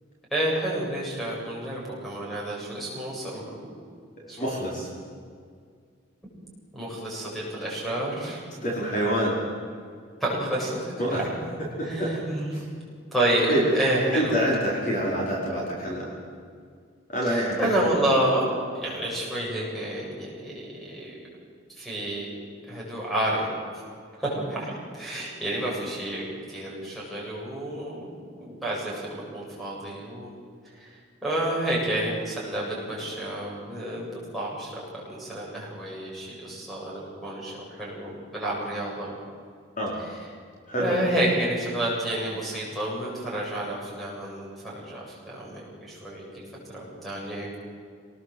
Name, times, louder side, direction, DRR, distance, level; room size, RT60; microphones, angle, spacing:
voice 1, 0.3-3.7 4.3-4.6 6.7-8.4 10.2-11.5 11.8-12.6 13.1-14.3 17.2-18.4 18.7-21.1 21.8-22.3 22.7-23.5 24.2-30.3 30.8-30.9 31.2-39.2 40.8-46.4 46.7-47.5, right 1 dB, ahead, -5 dB, 7.9 m, -29 dB
voice 2, 4.2-4.9 8.6-9.3 11.0-11.2 11.8-12.1 12.5-12.6 13.5-13.7 14.1-16.1 17.1-17.7 39.8-40.0 40.7-41.0, equal, 40° left, -4 dB, 4.8 m, -26 dB
26.0 x 20.0 x 8.0 m, 2.1 s
head